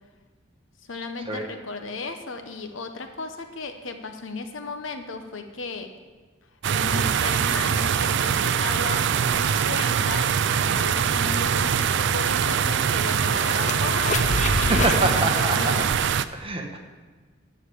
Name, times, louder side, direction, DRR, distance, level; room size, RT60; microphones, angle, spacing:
voice 1, 0.9-5.9 6.7-14.9 15.4-15.8, left 3 dB, 70° left, 7 dB, 0.9 m, -35 dB
sound 1, 6.6-16.3, right 7 dB, 65° right, 0.4 m, -23 dB
sound 2, 10.0-15.0, left 3 dB, 40° left, 0.7 m, -31 dB
voice 2, 14.5-15.8 16.3-16.8, right 2 dB, 30° right, 2 dB, 1.3 m, -26 dB
12.5 x 4.9 x 8.4 m, 1.4 s
head